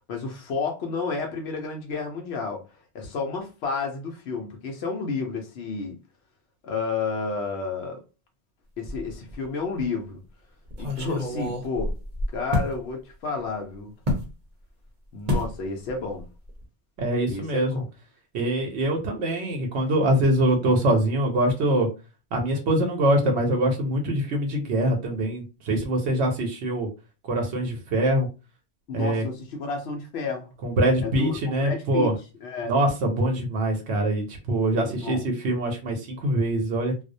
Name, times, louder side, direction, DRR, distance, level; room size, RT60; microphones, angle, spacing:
voice 1, 0.1-2.6 2.9-5.9 6.6-8.0 8.8-10.2 10.8-11.9 12.3-13.9 15.1-16.3 17.3-17.9 28.9-30.5 31.0-32.1 32.4-32.7 34.7-35.3, left 4 dB, 80° left, 0.9 m, -31 dB
sound 1, 8.8-9.4 9.8-9.9 10.7-12.8 14.1-14.3 15.3-15.6 15.9-16.2 16.5-16.6, left 1 dB, 45° right, 0.7 m, -28 dB
voice 2, 17.0-17.8 18.3-21.9 22.3-26.9 27.3-28.3 28.9-29.2 30.6-32.1 32.6-36.9, right 1 dB, 85° right, 0.9 m, -24 dB
2.3 x 2.0 x 2.6 m
omnidirectional pair, 1.1 m